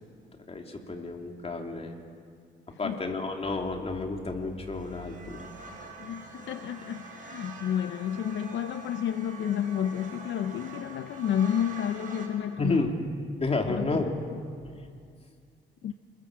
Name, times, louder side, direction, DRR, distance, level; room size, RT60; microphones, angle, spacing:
voice 1, 0.5-2.0 2.8-5.5 5.8-5.9 12.6-12.9 13.4-14.0, left 3 dB, 30° left, 2 dB, 3.2 m, -31 dB
sound 1, 4.6-12.3, right 4 dB, 40° right, 6.6 m, -45 dB
voice 2, 6.0-12.9 13.7-14.0 15.8-15.9, left 9 dB, 70° left, 10 dB, 0.8 m, -30 dB
28.0 x 21.5 x 7.5 m, 2.2 s
cardioid pair, 90°, 20 cm